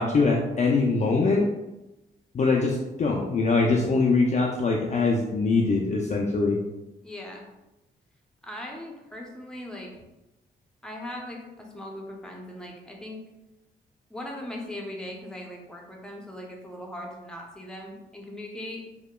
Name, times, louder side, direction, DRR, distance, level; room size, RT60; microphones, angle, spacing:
voice 1, 0.0-1.5 2.3-6.6, left 3 dB, 35° left, -1 dB, 0.4 m, -23 dB
voice 2, 7.0-7.4 8.4-9.9 10.8-13.2 14.1-18.8, left 1 dB, 5° left, -1 dB, 0.7 m, -39 dB
2.8 x 2.1 x 2.2 m, 0.99 s
supercardioid pair, 50°, 20 cm